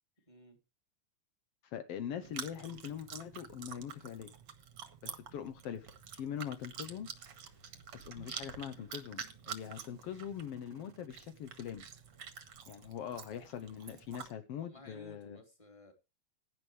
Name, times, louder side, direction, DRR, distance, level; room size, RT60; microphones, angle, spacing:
voice 1, 0.3-0.6 6.4-6.6 14.5-15.9, left 1 dB, 10° left, 2.7 m, -55 dB
voice 2, 1.6-4.3 5.0-7.1 7.9-11.9 12.7-15.4, left 9 dB, 85° left, 1.3 m, -42 dB
Chewing mastication, 2.2-14.3, right 7 dB, 55° right, 1.9 m, -48 dB
16.5 x 10.5 x 3.3 m
omnidirectional pair, 3.9 m